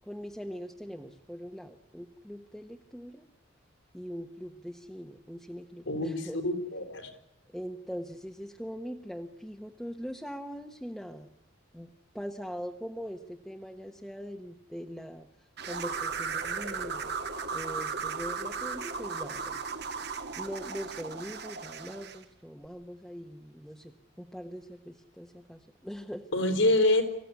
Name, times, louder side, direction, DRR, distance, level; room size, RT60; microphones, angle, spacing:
voice 1, 0.0-3.3 3.9-6.4 7.5-11.3 11.7-17.1 17.5-20.1 20.3-26.3, equal, ahead, 2 dB, 1.2 m, -42 dB
voice 2, 5.9-7.1 26.3-27.0, left 1 dB, 80° left, 7 dB, 4.4 m, -26 dB
sound 1, 15.6-22.2, right 5 dB, 55° right, 1.9 m, -36 dB
25.5 x 16.0 x 9.6 m, 0.86 s
head